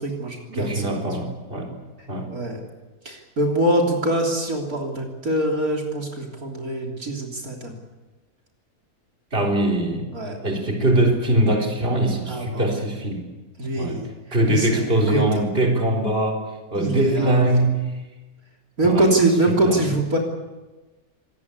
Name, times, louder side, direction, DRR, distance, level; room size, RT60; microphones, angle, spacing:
voice 1, 0.0-1.0 2.3-2.6 3.1-7.7 10.1-10.4 12.3-12.7 13.6-14.1 14.5-15.2 16.8-17.4 18.8-20.2, right 1 dB, 65° right, 0 dB, 3.8 m, -23 dB
voice 2, 0.6-1.7 2.1-2.3 9.3-10.1 10.4-13.2 13.7-14.0 14.3-16.4 16.7-18.0 18.8-19.1 19.5-19.9, right 1 dB, 35° right, 1 dB, 4.1 m, -22 dB
26.0 x 19.5 x 8.4 m, 1.2 s
omnidirectional pair, 1.6 m